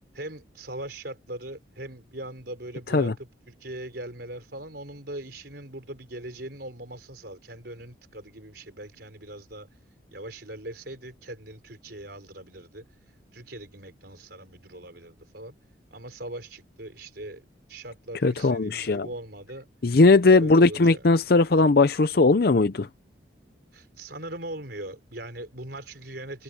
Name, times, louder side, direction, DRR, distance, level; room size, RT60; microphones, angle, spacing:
voice 1, 0.1-15.6 15.9-19.7 20.3-21.0 23.7-26.4, right 1 dB, 60° right, 4.7 m, -40 dB
voice 2, 18.2-19.1 19.8-22.9, left 3 dB, 55° left, 0.6 m, -19 dB
head